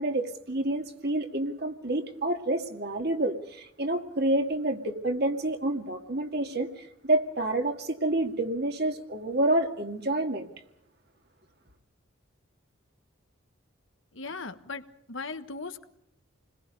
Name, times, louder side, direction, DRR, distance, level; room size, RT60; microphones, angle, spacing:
voice 1, 0.0-6.7 7.0-10.5, right 1 dB, 50° right, 2.2 m, -28 dB
voice 2, 14.1-15.9, left 4 dB, 70° left, 1.4 m, -38 dB
29.0 x 21.0 x 5.3 m
head